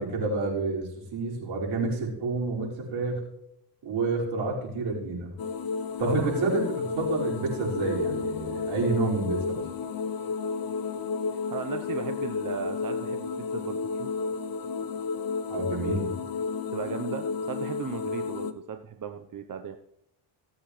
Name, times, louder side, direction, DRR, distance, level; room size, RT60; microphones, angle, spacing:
voice 1, 0.0-3.2 3.8-5.3 6.0-9.6 15.5-16.1, right 3 dB, 70° right, -3 dB, 5.7 m, -29 dB
sound 1, 5.4-18.5, left 5 dB, 45° left, 1.1 m, -32 dB
voice 2, 11.3-14.1 16.7-19.8, right 7 dB, 40° right, 7 dB, 1.0 m, -36 dB
18.0 x 8.3 x 3.3 m, 0.76 s
supercardioid pair, 75°, 49 cm